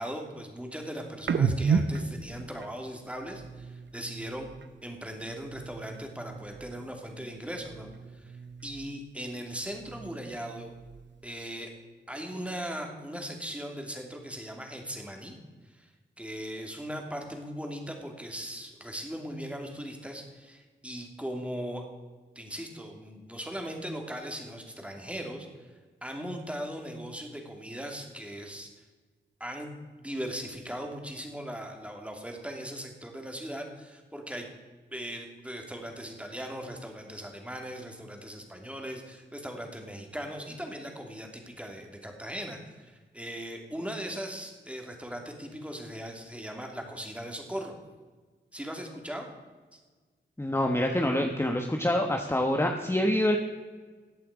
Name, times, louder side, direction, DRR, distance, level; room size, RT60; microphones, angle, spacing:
voice 1, 0.0-4.5 4.8-7.9 8.1-10.7 11.2-11.7 12.1-15.4 15.7-15.9 16.2-21.8 22.3-25.7 26.0-28.7 29.4-34.5 34.9-47.7 48.5-49.3 49.7-49.8, equal, 5° right, 2 dB, 2.7 m, -39 dB
sound 1, 1.2-4.8 5.1-7.0 7.2-9.1 9.4-11.3, right 5 dB, 65° right, 0.8 m, -34 dB
voice 2, 50.4-53.4, left 1 dB, 15° left, 3 dB, 1.2 m, -26 dB
14.5 x 8.5 x 5.0 m, 1.4 s
cardioid pair, 45°, 20 cm